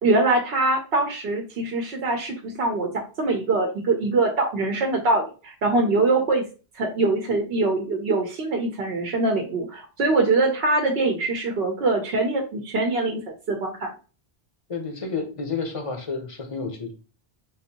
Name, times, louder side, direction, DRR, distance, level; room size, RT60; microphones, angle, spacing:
voice 1, 0.0-2.9 3.2-6.4 6.8-13.2 13.5-13.9, right 2 dB, 70° right, 2 dB, 0.9 m, -23 dB
voice 2, 14.7-16.9, left 4 dB, 35° left, 4 dB, 0.7 m, -30 dB
3.5 x 2.6 x 2.7 m, 0.35 s
omnidirectional pair, 1.1 m